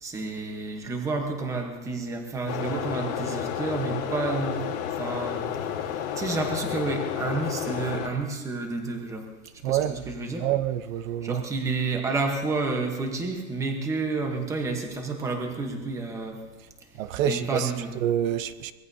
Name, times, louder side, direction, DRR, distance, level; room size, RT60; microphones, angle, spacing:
voice 1, 0.0-4.6 5.0-5.5 6.2-9.3 9.6-10.5 11.2-16.4 17.2-17.9, right 3 dB, 5° right, 1.0 m, -30 dB
sound 1, 2.5-8.1, left 8 dB, 70° left, 2.6 m, -31 dB
voice 2, 9.6-10.0 10.4-11.4 16.9-17.7 18.0-18.7, right 10 dB, 70° right, 0.8 m, -27 dB
24.0 x 20.0 x 2.7 m
supercardioid pair, 180°, 41 cm